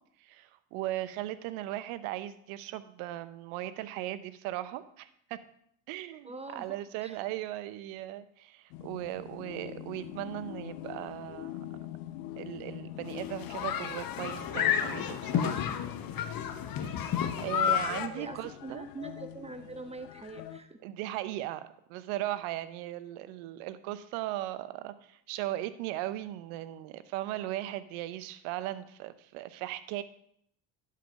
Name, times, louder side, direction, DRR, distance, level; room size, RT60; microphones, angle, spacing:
voice 1, 0.2-5.4 5.9-11.6 12.4-15.8 16.8-18.9 20.8-30.0, right 14 dB, 70° right, 14 dB, 0.9 m, -38 dB
voice 2, 6.2-6.8 7.0-7.2 18.0-20.8, right 2 dB, 10° right, 6 dB, 1.4 m, -43 dB
sound 1, 8.7-20.6, left 13 dB, 75° left, 0.8 m, -44 dB
sound 2, 13.1-18.1, left 9 dB, 45° left, 1.0 m, -31 dB
11.0 x 5.1 x 5.6 m, 0.71 s
hypercardioid pair, 65°, 50 cm